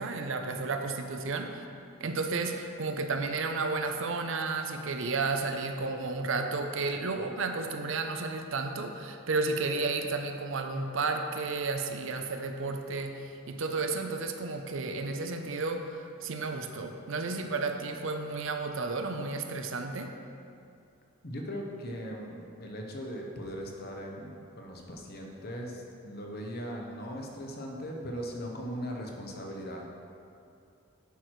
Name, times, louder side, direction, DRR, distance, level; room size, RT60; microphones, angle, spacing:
voice 1, 0.0-1.6 2.0-20.1, right 3 dB, 60° right, 5 dB, 0.6 m, -32 dB
voice 2, 21.2-29.9, equal, 45° left, 0 dB, 1.0 m, -39 dB
10.0 x 4.6 x 4.6 m, 2.5 s
head